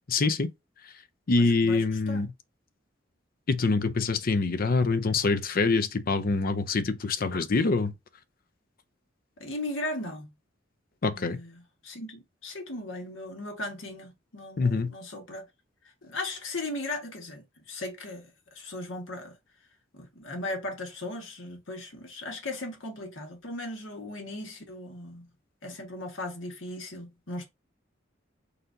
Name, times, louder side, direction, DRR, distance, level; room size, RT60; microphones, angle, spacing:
voice 1, 0.1-0.5 1.3-2.3 3.5-7.9 11.0-11.4 14.6-14.9, left 3 dB, 50° left, 0.6 m, -25 dB
voice 2, 1.4-2.3 9.4-10.3 11.2-15.5 16.0-19.4 19.9-25.3 25.6-27.5, left 2 dB, 75° left, 1.5 m, -37 dB
4.0 x 4.0 x 2.5 m
head